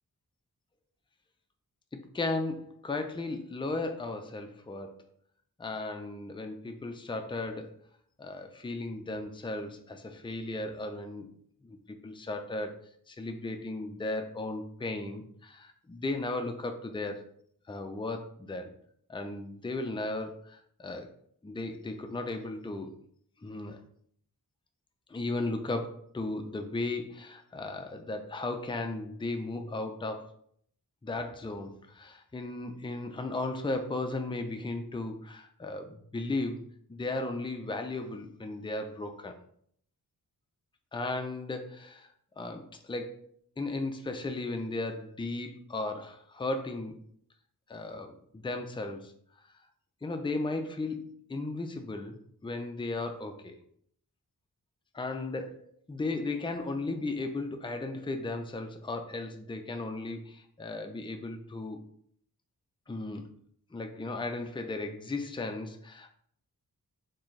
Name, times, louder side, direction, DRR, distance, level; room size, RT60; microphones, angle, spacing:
voice 1, 1.9-4.9 5.6-7.8 8.2-11.3 11.6-11.8 12.0-12.8 13.1-17.2 17.7-18.7 19.1-21.1 21.4-22.9 23.4-23.8 25.1-30.3 31.0-36.6 36.9-39.4 40.9-42.1 42.4-43.3 43.6-47.0 47.7-49.1 50.0-52.2 52.4-53.6 54.9-61.8 62.9-63.2 63.7-66.2, left 2 dB, 15° left, 6 dB, 0.5 m, -35 dB
4.4 x 3.4 x 3.2 m, 0.64 s
wide cardioid pair, 75°, 36 cm